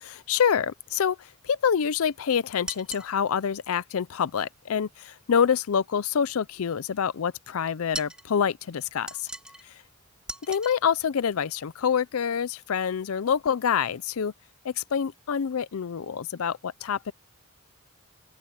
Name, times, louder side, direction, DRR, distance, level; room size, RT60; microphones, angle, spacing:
voice 1, 0.0-9.3 9.6-9.8 10.5-14.3 14.6-17.1, left 7 dB, 75° left, 0.5 m, -26 dB
sound 1, 2.7-3.1 7.9-8.3 9.1-9.6 10.3-10.8, right 1 dB, 5° right, 2.9 m, -38 dB
open air
head